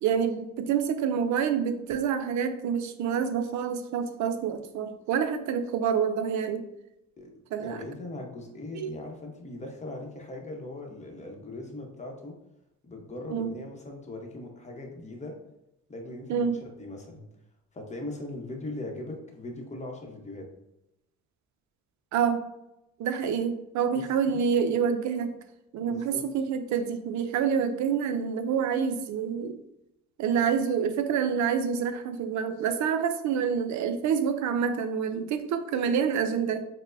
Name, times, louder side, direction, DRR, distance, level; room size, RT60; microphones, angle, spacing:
voice 1, 0.0-6.6 7.5-7.8 8.8-8.9 13.3-13.6 16.3-16.6 22.1-22.4 23.0-25.3 25.7-29.6 30.2-36.6, right 7 dB, 70° right, 9 dB, 0.5 m, -27 dB
voice 2, 7.6-12.4 12.8-15.4 15.9-17.2 17.7-20.5 23.9-24.5 25.8-26.3, left 2 dB, 25° left, 1 dB, 0.8 m, -40 dB
4.3 x 2.1 x 2.5 m, 0.87 s
cardioid pair, 90°, 30 cm